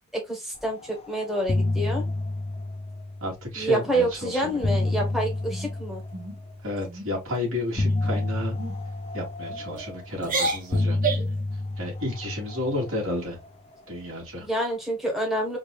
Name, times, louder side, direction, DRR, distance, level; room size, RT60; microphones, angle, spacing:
voice 1, 0.1-2.0 3.5-6.0 14.4-15.6, right 1 dB, ahead, 1.2 m, -27 dB
sound 1, 0.8-1.1 1.3-3.6 4.3-6.8 7.8-10.2 10.7-13.3, left 2 dB, 25° left, 0.5 m, -29 dB
voice 2, 3.2-4.6 6.6-8.6 9.1-11.0 11.8-13.4 13.9-14.5, left 1 dB, 65° right, 2.4 m, -31 dB
sound 2, 4.5-5.1 5.5-5.7 6.1-6.4 6.8-7.1 7.7-8.1 8.6-8.8 9.5-9.8 10.2-11.4, right 3 dB, 40° right, 0.9 m, -31 dB
4.5 x 2.7 x 2.4 m
head